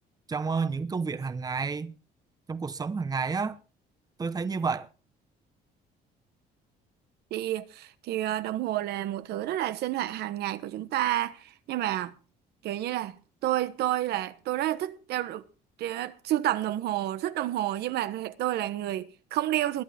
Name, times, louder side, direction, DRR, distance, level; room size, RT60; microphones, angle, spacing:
voice 1, 0.3-1.9 2.5-3.6 4.2-4.9, right 5 dB, 20° right, 1.0 m, -30 dB
voice 2, 7.3-12.1 12.6-13.2 13.4-15.4 15.8-19.8, right 13 dB, 75° right, 1.2 m, -30 dB
21.5 x 11.0 x 3.6 m
cardioid pair, 110°, 17 cm